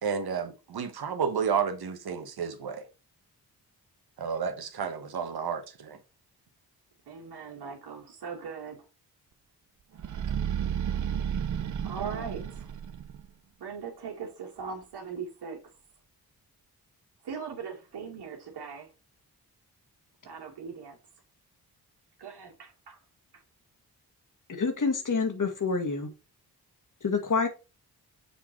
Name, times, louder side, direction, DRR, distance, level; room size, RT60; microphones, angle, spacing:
voice 1, 0.0-2.9 4.2-6.0, right 6 dB, 70° right, 1.2 m, -31 dB
voice 2, 7.1-8.9 11.8-12.7 13.6-15.6 17.2-18.9 20.2-21.0 22.2-23.0 23.3-23.4, right 6 dB, 90° right, 2.1 m, -40 dB
sound 1, 10.0-13.3, right 9 dB, 50° right, 0.6 m, -32 dB
voice 3, 24.5-26.1 27.0-27.5, left 4 dB, 50° left, 1.8 m, -27 dB
6.9 x 3.8 x 4.4 m
cardioid pair, 60°, 38 cm